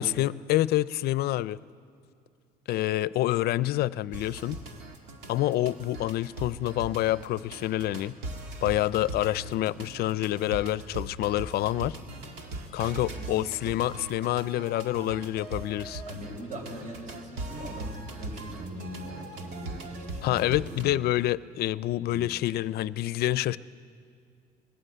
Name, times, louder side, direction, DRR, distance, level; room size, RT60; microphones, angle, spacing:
voice 1, 0.0-1.6 2.7-4.6 5.3-8.1 8.6-11.9 12.7-16.0 20.2-23.6, left 15 dB, 70° left, 19 dB, 0.5 m, -27 dB
sound 1, 4.1-20.8, right 2 dB, 85° right, 2.3 m, -40 dB
voice 2, 16.1-20.8 22.1-22.3, right 1 dB, 45° right, 2 dB, 5.3 m, -41 dB
22.0 x 18.5 x 8.0 m, 2.3 s
cardioid pair, 110°, 17 cm